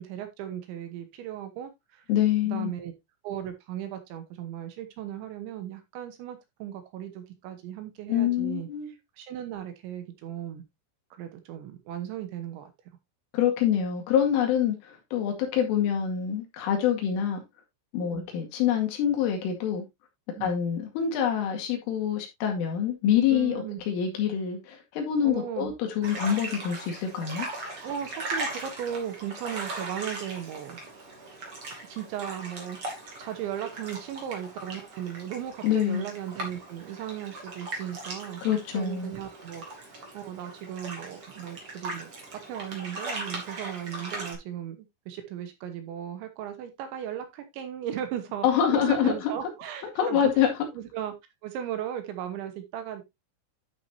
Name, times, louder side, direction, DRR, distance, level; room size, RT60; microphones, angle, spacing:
voice 1, 0.0-2.1 2.4-2.9 3.2-8.7 9.2-10.6 11.1-12.7 18.0-18.3 20.3-20.5 23.3-23.8 25.2-25.8 27.8-30.8 31.9-38.4 38.7-48.5 48.7-50.4 50.8-51.1 51.4-53.0, right 10 dB, 75° right, 3.2 m, -37 dB
voice 2, 2.1-2.7 8.1-8.9 13.3-17.4 17.9-19.8 20.4-27.5 35.6-36.1 38.4-39.2 48.4-49.2 50.0-50.5, left 9 dB, 75° left, 4.6 m, -26 dB
sound 1, 26.0-44.3, right 2 dB, 35° right, 2.6 m, -39 dB
11.5 x 6.2 x 2.7 m
omnidirectional pair, 5.9 m